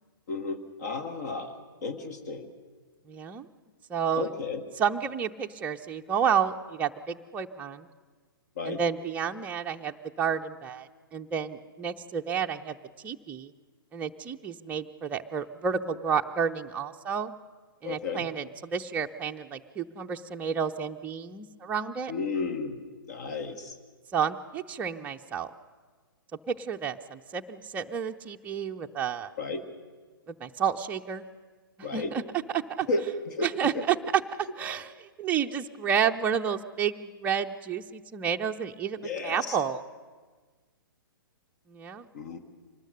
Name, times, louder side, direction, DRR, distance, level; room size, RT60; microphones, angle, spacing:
voice 1, 0.3-2.5 4.1-4.6 8.6-8.8 17.8-18.3 22.1-22.8 23.1-23.8 29.4-29.6 31.8-32.1 32.9-33.5 33.7-33.8 39.0-39.6 42.1-42.4, left 3 dB, 45° left, 7 dB, 1.5 m, -33 dB
voice 2, 3.1-3.5 3.9-4.3 4.8-7.9 8.6-12.7 13.0-13.5 13.9-17.3 17.8-22.1 24.1-25.5 26.5-29.3 30.3-31.2 31.9-32.2 32.5-32.9 33.4-34.0 34.6-39.8 41.7-42.0, right 7 dB, 15° right, 4 dB, 0.6 m, -30 dB
25.0 x 19.5 x 6.5 m, 1.4 s
figure-of-eight pair, 115°, 12 cm